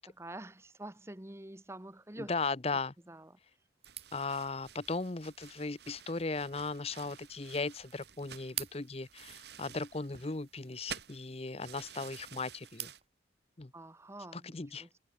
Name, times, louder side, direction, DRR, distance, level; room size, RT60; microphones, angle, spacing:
voice 1, 0.0-2.3 3.1-3.4 13.7-15.0, right 1 dB, 15° right, 1.0 m, -47 dB
voice 2, 2.3-2.9 4.1-12.9 13.6-13.7 14.3-14.9, left 3 dB, 30° left, 0.8 m, -37 dB
sound 1, 3.8-13.1, right 10 dB, 30° right, 2.2 m, -50 dB
sound 2, 3.8-13.0, right 7 dB, 60° right, 1.7 m, -51 dB
head